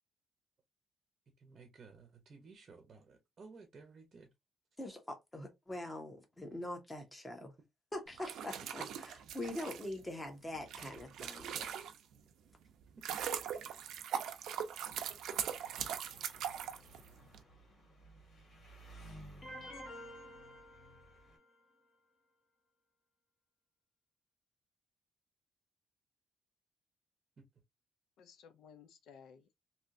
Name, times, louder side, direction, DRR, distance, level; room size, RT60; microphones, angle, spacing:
voice 1, 1.4-4.3 27.4-27.5, right 4 dB, 30° right, 0.7 m, -56 dB
voice 2, 4.8-7.5 7.9-11.7, left 1 dB, 10° left, 0.8 m, -43 dB
sound 1, 8.1-12.2 12.7-17.4, right 9 dB, 85° right, 0.5 m, -41 dB
voice 3, 14.8-15.6 16.1-16.2 28.2-29.6, left 7 dB, 80° left, 0.4 m, -60 dB
Engine, 14.8-21.4, right 1 dB, 60° left, 2.4 m, -57 dB
sound 2, 19.4-21.5, equal, 40° left, 1.1 m, -50 dB
3.3 x 2.7 x 2.5 m
cardioid pair, 180°, 0 cm